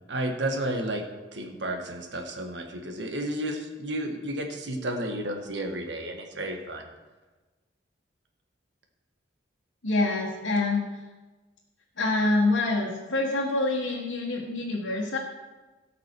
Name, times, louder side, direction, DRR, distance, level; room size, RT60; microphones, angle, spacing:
voice 1, 0.1-1.0 1.3-6.9, right 1 dB, 70° right, 4 dB, 1.5 m, -32 dB
voice 2, 9.8-10.8 12.0-15.2, left 2 dB, 85° left, -3 dB, 1.5 m, -26 dB
17.5 x 6.0 x 4.6 m, 1.2 s
head